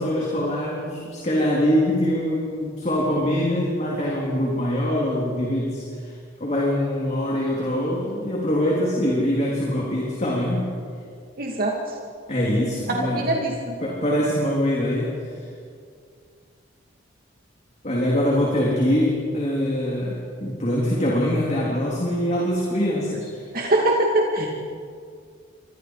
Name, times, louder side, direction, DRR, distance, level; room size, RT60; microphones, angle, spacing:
voice 1, 0.0-6.1 6.4-10.7 12.3-13.4 13.8-15.4 17.8-23.3 24.4-24.5, equal, 40° left, -4 dB, 3.8 m, -23 dB
voice 2, 11.4-11.7 13.0-13.8 23.5-24.5, right 1 dB, 50° right, -1 dB, 2.5 m, -22 dB
29.5 x 25.0 x 5.0 m, 2.2 s
head